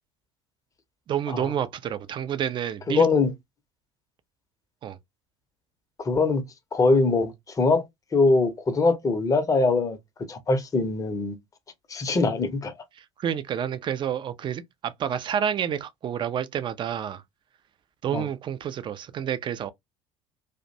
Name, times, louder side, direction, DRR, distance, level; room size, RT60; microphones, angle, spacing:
voice 1, 1.1-3.1 4.8-5.0 13.0-17.2 18.0-19.7, right 9 dB, 30° right, 0.4 m, -29 dB
voice 2, 2.9-3.3 6.0-6.4 6.7-7.8 8.1-10.0 10.3-11.4 11.9-12.7 18.1-18.2, left 3 dB, 20° left, 0.6 m, -22 dB
2.5 x 2.1 x 2.5 m
figure-of-eight pair, 65°, 16 cm